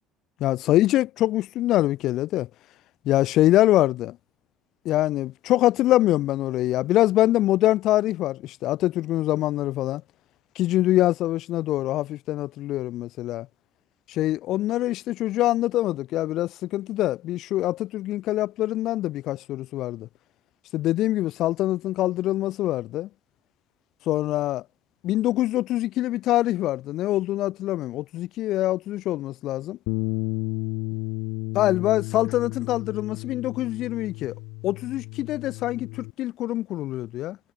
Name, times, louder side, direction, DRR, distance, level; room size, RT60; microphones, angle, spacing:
voice 1, 0.4-2.5 3.1-4.2 4.8-10.0 10.6-13.5 14.1-20.1 20.7-23.1 24.1-24.6 25.0-29.8 31.5-34.3 34.6-37.4, left 15 dB, 60° left, 0.6 m, -24 dB
Bass guitar, 29.9-36.1, left 31 dB, 85° left, 1.6 m, -32 dB
cardioid pair, 140°, 0 cm